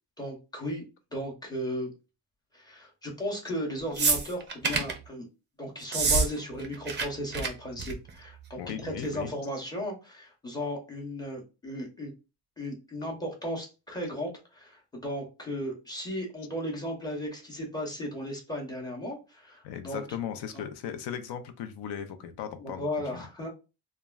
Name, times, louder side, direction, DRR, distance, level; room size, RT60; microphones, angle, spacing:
voice 1, 0.2-0.8 1.1-1.9 2.5-5.2 5.6-12.1 12.6-20.0 20.5-20.6 22.6-23.5, equal, 10° left, -1 dB, 0.7 m, -35 dB
sound 1, 4.0-5.0 5.8-6.3 6.5-7.1 7.3-7.5 7.8-8.1 9.0-9.1, right 4 dB, 25° right, 0.4 m, -26 dB
voice 2, 8.6-9.6 19.6-22.9 23.1-23.3, left 8 dB, 70° left, 8 dB, 0.6 m, -37 dB
3.0 x 2.2 x 2.3 m, 0.29 s
cardioid pair, 155°, 43 cm